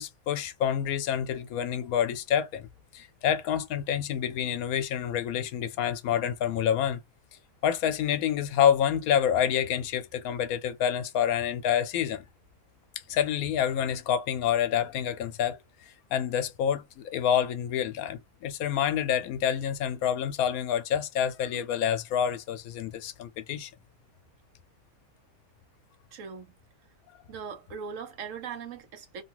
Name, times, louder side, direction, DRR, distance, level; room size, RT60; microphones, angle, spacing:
voice 1, 0.0-2.7 2.9-7.0 7.6-12.2 13.1-15.6 16.1-23.7, left 9 dB, 80° left, 1.1 m, -27 dB
voice 2, 26.1-26.5 27.3-29.2, right 6 dB, 70° right, 1.0 m, -39 dB
3.0 x 2.3 x 2.9 m
omnidirectional pair, 1.5 m